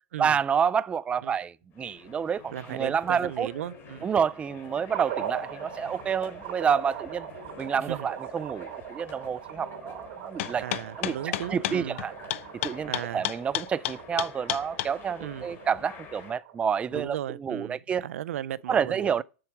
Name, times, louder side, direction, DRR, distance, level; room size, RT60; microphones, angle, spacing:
voice 1, 0.2-3.5 4.0-7.3 7.6-10.6 11.0-12.1 12.6-17.2 17.4-18.0 18.7-19.2, right 7 dB, 15° right, 0.4 m, -28 dB
sound 1, 1.7-16.4, left 6 dB, 30° left, 4.1 m, -48 dB
voice 2, 2.5-4.1 7.8-8.1 10.6-12.0 12.9-13.2 15.2-15.5 16.9-19.2, right 12 dB, 80° right, 0.5 m, -36 dB
sound 2, 4.9-17.1, right 10 dB, 50° right, 2.9 m, -41 dB
sound 3, 10.4-14.9, left 14 dB, 65° left, 0.7 m, -30 dB
7.7 x 7.0 x 4.8 m
hypercardioid pair, 130°, 7 cm